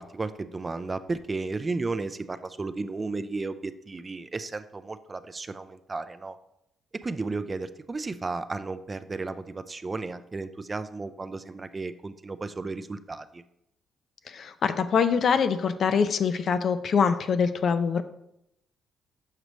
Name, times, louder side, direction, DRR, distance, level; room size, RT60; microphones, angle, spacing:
voice 1, 0.0-6.4 7.0-13.4, right 3 dB, 25° right, 11 dB, 0.4 m, -34 dB
voice 2, 14.3-18.0, left 6 dB, 55° left, 10 dB, 0.4 m, -24 dB
6.5 x 4.9 x 3.1 m, 0.81 s
cardioid pair, 90°, 0 cm